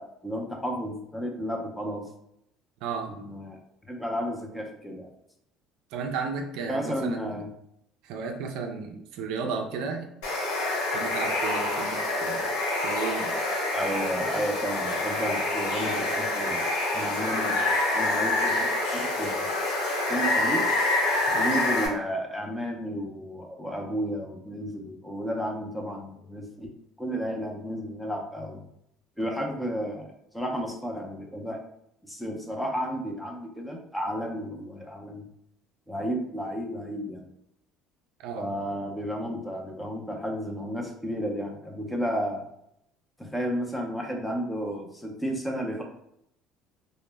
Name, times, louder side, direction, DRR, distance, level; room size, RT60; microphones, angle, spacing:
voice 1, 0.0-2.0 3.1-3.6 3.9-5.1 6.7-7.5 13.7-16.7 16.9-19.5 20.1-20.7 21.4-26.7 27.0-28.6 29.2-30.1 30.3-31.6 32.0-35.2 35.9-37.3 38.4-42.4 43.2-45.8, equal, 5° left, 1 dB, 0.5 m, -32 dB
voice 2, 2.8-3.1 5.9-7.5 8.0-10.1 10.9-12.5 12.8-13.4 21.3-21.6 38.2-38.5, right 5 dB, 75° right, 4 dB, 0.3 m, -34 dB
Water, 10.2-21.9, left 2 dB, 90° left, 0.7 m, -27 dB
2.0 x 2.0 x 3.2 m, 0.76 s
supercardioid pair, 95°, 0 cm